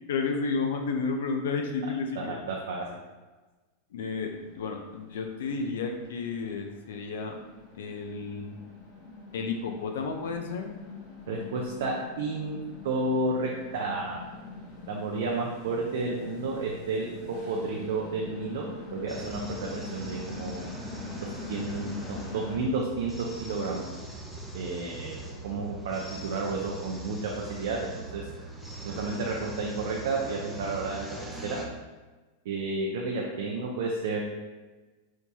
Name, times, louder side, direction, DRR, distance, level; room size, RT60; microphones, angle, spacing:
voice 1, 0.1-2.4 3.9-7.3 7.8-8.6 9.3-10.7, left 4 dB, 85° left, 4 dB, 0.4 m, -32 dB
voice 2, 2.2-3.0 11.3-12.6 12.8-14.2 14.9-17.1 17.5-20.6 21.5-23.9 24.5-25.2 25.4-28.2 28.8-31.1 31.4-31.6 32.5-34.2, right 3 dB, 75° right, -1 dB, 0.5 m, -31 dB
sound 1, 4.2-22.6, left 3 dB, 40° left, 0.8 m, -44 dB
sound 2, 19.1-31.7, right 2 dB, ahead, 0.4 m, -41 dB
4.4 x 2.2 x 2.7 m, 1.2 s
supercardioid pair, 140°, 0 cm